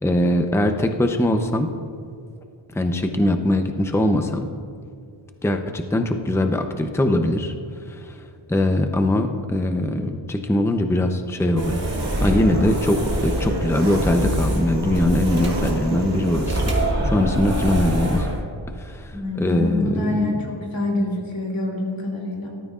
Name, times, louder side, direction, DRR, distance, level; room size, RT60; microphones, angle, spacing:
voice 1, 0.0-1.7 2.7-4.5 5.4-11.9 12.2-16.7 17.0-18.3 18.8-20.4, left 1 dB, 5° left, 5 dB, 0.7 m, -22 dB
sound 1, 11.6-18.4, right 1 dB, 35° right, 2.5 m, -25 dB
Engine, 11.7-16.9, right 3 dB, 55° right, 1.5 m, -34 dB
voice 2, 19.1-22.5, left 1 dB, 45° left, -2 dB, 3.3 m, -26 dB
18.5 x 13.5 x 2.5 m, 2.3 s
wide cardioid pair, 105°, 47 cm